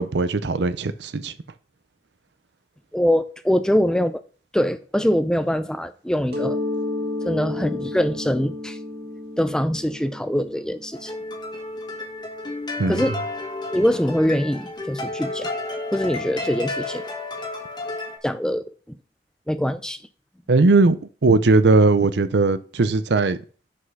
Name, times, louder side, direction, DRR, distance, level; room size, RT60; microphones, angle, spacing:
voice 1, 0.0-1.3 12.8-13.0 20.5-21.0 21.2-23.4, right 3 dB, 70° right, 0.6 m, -18 dB
voice 2, 2.9-4.2 4.5-6.6 7.2-8.8 9.4-11.2 12.9-13.2 13.7-15.5 15.9-17.1 18.2-18.7 19.5-20.0, equal, 5° left, 0.4 m, -23 dB
Mallet percussion, 6.3-11.9, left 2 dB, 55° right, 2.3 m, -31 dB
sound 1, 10.9-18.2, left 2 dB, 25° left, 1.1 m, -31 dB
6.4 x 5.7 x 5.4 m
head